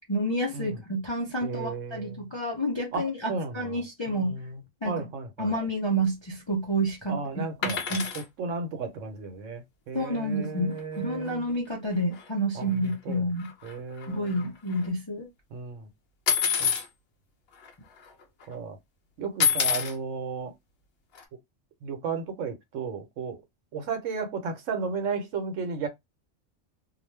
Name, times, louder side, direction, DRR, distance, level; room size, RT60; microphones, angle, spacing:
voice 1, 0.0-4.4 4.8-5.0 5.4-7.2 7.6-8.1 9.9-13.5 14.1-15.3, right 1 dB, 35° left, 0.4 m, -29 dB
voice 2, 1.4-2.3 2.9-3.7 4.1-4.5 4.8-5.5 7.1-7.8 8.4-11.5 12.5-12.7 13.1-13.2 13.6-14.4 15.5-15.9 16.6-16.7 18.5-18.8 19.2-20.5 21.8-23.4 23.7-25.9, right 4 dB, 75° right, 1.0 m, -34 dB
sound 1, 7.6-8.2 10.4-10.5 10.8-11.0 11.2-11.3 12.1-12.2 12.7-14.9 16.3-16.9 17.6-17.7 18.0-18.4 19.4-19.9 21.1-21.2, left 7 dB, 55° left, 0.8 m, -27 dB
2.4 x 2.2 x 3.2 m
omnidirectional pair, 1.3 m